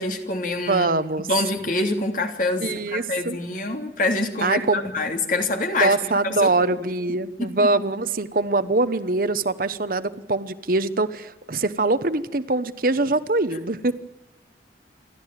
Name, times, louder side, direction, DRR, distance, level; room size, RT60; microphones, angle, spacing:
voice 1, 0.0-0.9 1.3-6.0 6.2-6.8 7.4-7.7, left 2 dB, 50° left, 4 dB, 3.1 m, -26 dB
voice 2, 0.7-1.3 2.6-3.4 4.4-4.8 5.8-14.0, right 2 dB, 55° right, 13 dB, 1.1 m, -23 dB
28.0 x 12.5 x 9.2 m, 0.96 s
head